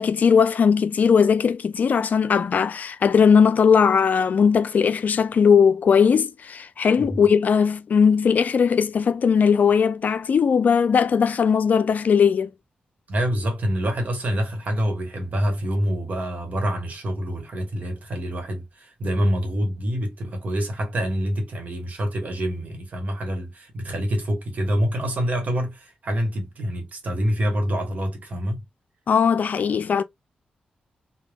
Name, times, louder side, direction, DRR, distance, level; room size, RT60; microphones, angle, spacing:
voice 1, 0.0-12.5 29.1-30.0, left 6 dB, 60° left, 0.4 m, -19 dB
voice 2, 13.1-28.6, equal, 55° right, 1.2 m, -26 dB
3.2 x 2.2 x 2.3 m
supercardioid pair, 50°, 3 cm